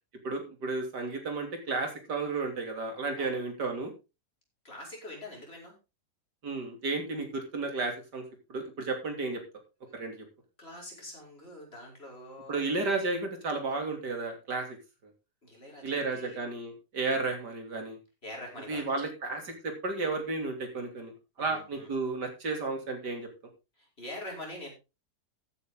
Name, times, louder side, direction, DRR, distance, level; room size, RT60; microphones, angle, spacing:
voice 1, 0.2-3.9 6.4-8.2 8.5-9.4 9.9-10.3 12.5-14.8 15.8-18.0 18.7-21.1 21.4-23.3, right 3 dB, 80° right, 4 dB, 3.5 m, -33 dB
voice 2, 4.6-5.8 9.9-10.0 10.6-12.7 15.4-16.4 17.1-17.3 18.2-19.0 21.4-21.9 23.8-24.7, left 1 dB, 35° left, -1 dB, 5.6 m, -45 dB
14.5 x 9.5 x 3.8 m, 0.29 s
omnidirectional pair, 1.8 m